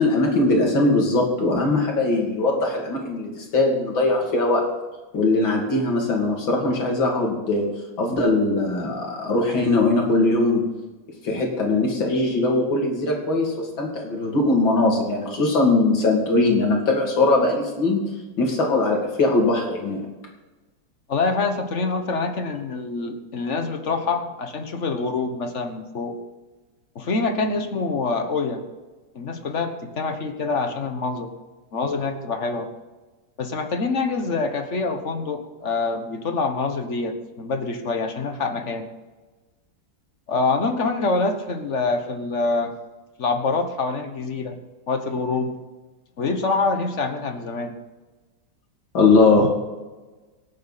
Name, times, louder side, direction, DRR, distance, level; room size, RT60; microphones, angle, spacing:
voice 1, 0.0-4.7 5.1-10.6 11.2-20.1 48.9-49.5, left 2 dB, 75° left, 0 dB, 3.4 m, -21 dB
voice 2, 21.1-26.1 26.9-28.6 29.1-31.3 31.7-32.7 33.4-38.9 40.3-42.7 43.2-44.6 44.9-45.6 46.2-47.8 49.4-49.5, left 3 dB, 40° left, 7 dB, 1.4 m, -25 dB
25.5 x 8.6 x 4.2 m, 1.2 s
omnidirectional pair, 2.1 m